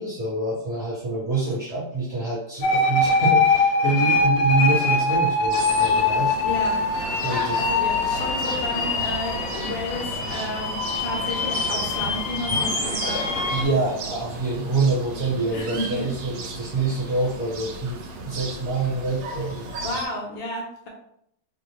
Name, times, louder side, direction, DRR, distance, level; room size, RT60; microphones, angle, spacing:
voice 1, 0.0-6.3 7.2-7.6 13.5-19.7, right 3 dB, 40° right, -11 dB, 1.3 m, -26 dB
voice 2, 2.5-2.9 6.4-6.8 7.3-13.6 15.5-16.1 16.8-16.9 19.8-20.9, left 1 dB, 70° left, -1 dB, 1.3 m, -32 dB
sound 1, 2.6-13.6, left 3 dB, 90° left, 1.6 m, -23 dB
sound 2, 5.5-20.1, right 3 dB, 75° right, 1.4 m, -35 dB
3.5 x 2.7 x 3.0 m, 0.72 s
omnidirectional pair, 2.4 m